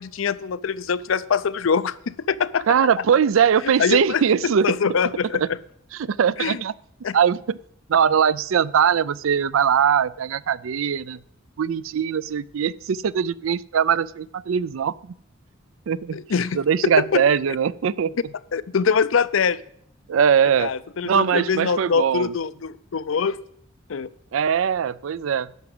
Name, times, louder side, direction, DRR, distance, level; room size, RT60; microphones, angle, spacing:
voice 1, 0.0-2.6 3.8-5.4 6.4-6.6 7.0-7.2 16.1-16.6 16.8-17.2 18.5-19.6 20.6-23.4 23.9-24.1, left 6 dB, 75° left, 17 dB, 0.5 m, -23 dB
voice 2, 2.7-4.7 5.3-5.5 5.9-6.7 7.1-7.6 7.9-11.2 11.6-15.1 15.9-16.2 16.5-18.2 20.1-20.7 21.0-22.3 24.3-25.5, right 7 dB, 80° right, 20 dB, 0.4 m, -21 dB
10.5 x 6.1 x 7.7 m, 0.68 s
head